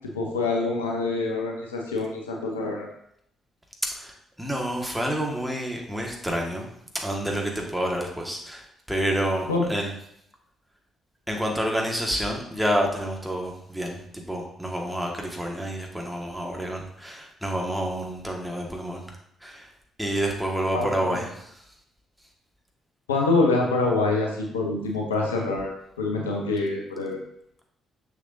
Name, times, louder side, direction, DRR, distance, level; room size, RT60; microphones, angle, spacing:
voice 1, 0.1-2.9 9.5-9.6 20.7-21.2 23.1-27.2, left 3 dB, 80° left, 0 dB, 0.8 m, -25 dB
voice 2, 4.4-6.7 7.0-8.6 8.9-9.9 11.3-19.0 19.4-19.6 20.0-21.2, equal, 5° right, 0 dB, 1.7 m, -28 dB
6.5 x 6.4 x 2.7 m, 0.72 s
figure-of-eight pair, 45°, 0 cm